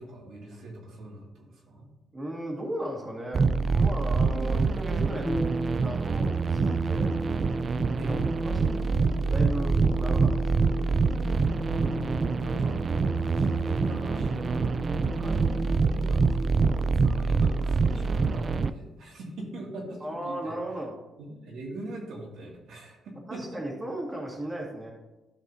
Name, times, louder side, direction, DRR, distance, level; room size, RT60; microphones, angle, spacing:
voice 1, 0.0-1.9 7.9-8.2 11.7-14.8 15.2-16.4 16.8-20.6 21.2-23.6, right 2 dB, 75° right, -2 dB, 2.2 m, -41 dB
voice 2, 2.1-5.3 5.8-7.1 8.0-8.9 9.3-10.8 15.2-15.4 20.0-21.0 23.3-24.9, right 1 dB, 20° right, -2 dB, 1.9 m, -36 dB
sound 1, 3.3-18.7, right 4 dB, 40° right, 0.3 m, -26 dB
sound 2, 5.3-18.1, equal, 5° left, 1.5 m, -35 dB
13.5 x 5.4 x 2.7 m, 1.0 s
cardioid pair, 90°, 0 cm